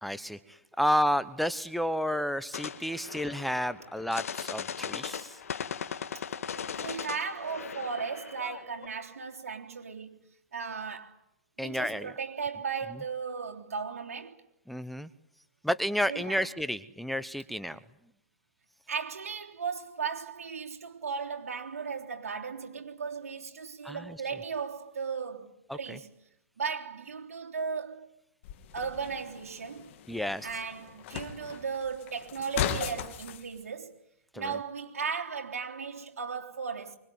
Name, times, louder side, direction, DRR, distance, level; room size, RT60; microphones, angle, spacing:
voice 1, 0.0-5.4 11.6-12.1 14.7-15.1 15.6-17.8 23.8-24.2 25.7-26.0 30.1-30.5 34.3-34.5, equal, ahead, 0.9 m, -31 dB
sound 1, 2.5-8.9, left 7 dB, 80° left, 2.0 m, -38 dB
voice 2, 5.6-10.2 10.5-11.2 11.6-14.4 16.1-16.4 18.9-26.1 26.6-28.1 28.7-29.9 30.4-33.9 34.4-37.0, right 5 dB, 80° right, 3.5 m, -36 dB
sound 2, 28.4-33.4, left 10 dB, 55° left, 2.8 m, -37 dB
24.5 x 22.5 x 9.4 m
hypercardioid pair, 125°, 8 cm